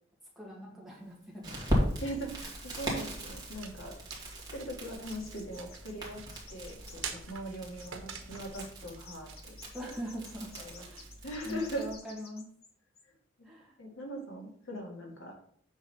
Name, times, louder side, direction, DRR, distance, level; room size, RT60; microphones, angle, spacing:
voice 1, 0.4-1.6 9.7-11.1 11.5-12.5 13.4-13.8, equal, ahead, -4 dB, 1.9 m, -42 dB
Crackle, 1.4-11.9, equal, 20° right, 2.4 m, -38 dB
voice 2, 2.0-4.0 4.5-6.2 6.5-9.5 10.5-10.8 11.2-11.9 13.4-13.5 13.8-15.3, right 1 dB, 75° left, 0 dB, 2.0 m, -40 dB
sound 1, 3.4-11.9, right 7 dB, 90° right, 1.1 m, -49 dB
sound 2, 5.1-5.9 6.3-7.5 7.8-8.6 9.0-12.7 13.0-13.1, left 5 dB, 50° left, 1.2 m, -53 dB
8.1 x 3.7 x 5.6 m, 0.63 s
head